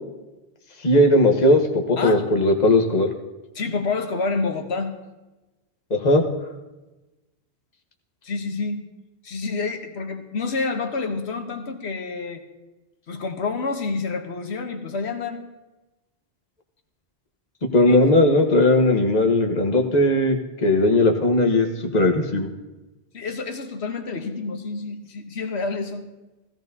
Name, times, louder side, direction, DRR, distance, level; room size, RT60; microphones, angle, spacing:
voice 1, 0.8-3.1 5.9-6.2 17.7-21.7 21.9-22.5, left 1 dB, 40° left, 4 dB, 1.2 m, -18 dB
voice 2, 2.0-2.3 3.5-4.9 8.2-8.8 9.2-12.4 13.1-15.4 17.8-18.0 23.1-26.1, left 4 dB, 80° left, 5 dB, 1.3 m, -28 dB
16.5 x 14.5 x 2.7 m, 1.1 s
omnidirectional pair, 1.1 m